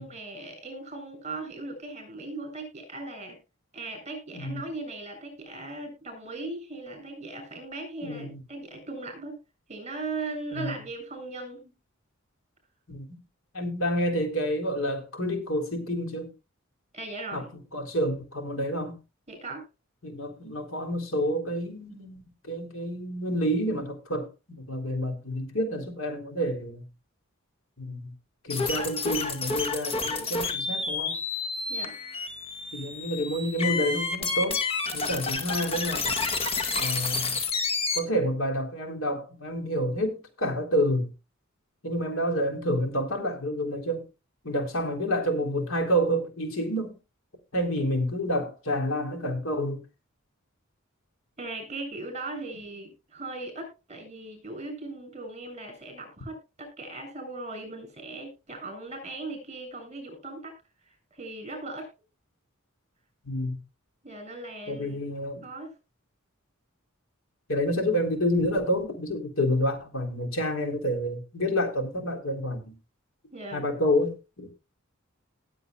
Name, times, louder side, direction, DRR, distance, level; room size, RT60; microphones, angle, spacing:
voice 1, 0.0-3.4 3.7-9.4 9.7-11.7 16.9-17.5 19.3-19.6 31.7-32.0 51.4-60.5 60.8-61.9 64.0-65.0 65.4-65.7 73.3-73.7, right 2 dB, 35° right, 5 dB, 7.8 m, -38 dB
voice 2, 4.3-4.7 8.0-8.4 10.6-10.7 12.9-13.2 13.5-16.3 17.3-19.0 20.0-22.2 22.4-26.8 27.8-28.1 28.4-31.1 32.7-34.6 34.9-36.1 36.8-37.4 37.9-41.1 41.8-44.1 44.4-46.9 47.5-49.8 63.2-63.6 64.7-65.5 67.5-72.8 73.5-74.5, equal, 70° left, 4 dB, 3.8 m, -29 dB
sound 1, 28.5-38.0, left 4 dB, 30° left, 2.1 m, -30 dB
19.0 x 8.3 x 2.5 m, 0.28 s
head